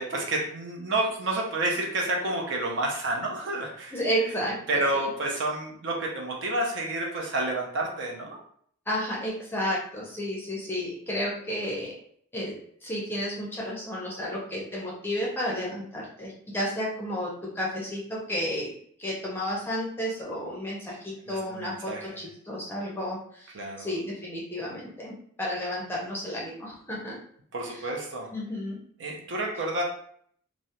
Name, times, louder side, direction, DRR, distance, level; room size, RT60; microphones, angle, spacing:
voice 1, 0.0-4.0 4.7-8.4 21.3-22.2 23.5-23.9 27.5-28.3 29.0-29.8, right 2 dB, 55° right, -1 dB, 0.5 m, -29 dB
voice 2, 3.9-4.8 8.9-11.9 12.3-12.5 12.8-25.1 25.4-27.2 27.7-27.8 28.3-28.8, equal, 10° left, -4 dB, 0.5 m, -32 dB
2.3 x 2.0 x 2.8 m, 0.63 s
head